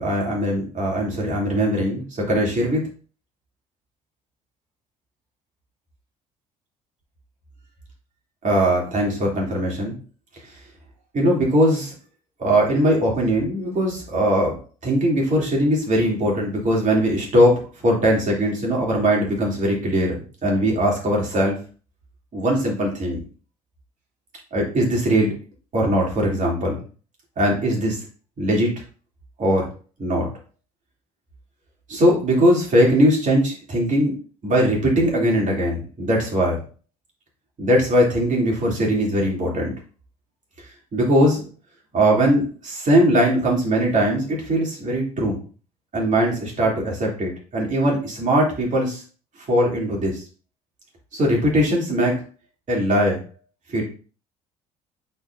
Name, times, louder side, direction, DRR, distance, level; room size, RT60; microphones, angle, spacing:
voice 1, 0.0-2.8 8.4-9.9 11.1-11.9 12.4-20.1 20.4-21.6 22.3-23.2 24.5-25.3 25.7-26.8 27.4-28.0 28.4-28.7 29.4-29.7 30.0-30.3 31.9-34.1 34.4-36.6 37.6-39.7 40.9-41.4 41.9-45.4 45.9-49.0 49.5-50.2 51.1-52.2 52.7-53.2 53.7-53.8, equal, 40° right, -2 dB, 3.0 m, -20 dB
8.3 x 4.5 x 2.7 m, 0.38 s
figure-of-eight pair, 50°, 20 cm